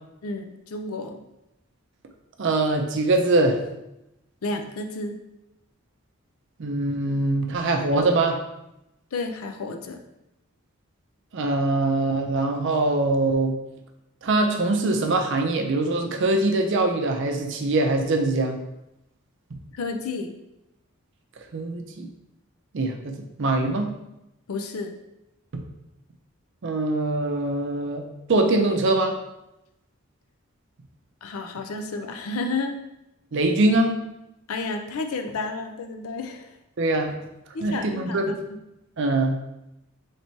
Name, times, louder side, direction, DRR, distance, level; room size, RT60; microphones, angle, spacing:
voice 1, 0.2-1.2 4.4-5.2 9.1-10.0 19.7-20.3 24.5-24.9 31.2-32.8 34.5-36.6 37.5-38.2 38.5-38.6, left 3 dB, 90° left, 6 dB, 0.5 m, -31 dB
voice 2, 2.4-3.6 6.6-8.4 11.3-13.6 14.2-18.6 21.5-22.1 22.7-23.9 25.5-25.6 26.6-29.1 33.3-33.9 36.8-37.1 37.6-38.2 39.0-39.4, right 2 dB, 60° right, 4 dB, 0.5 m, -23 dB
3.3 x 2.8 x 4.3 m, 0.90 s
head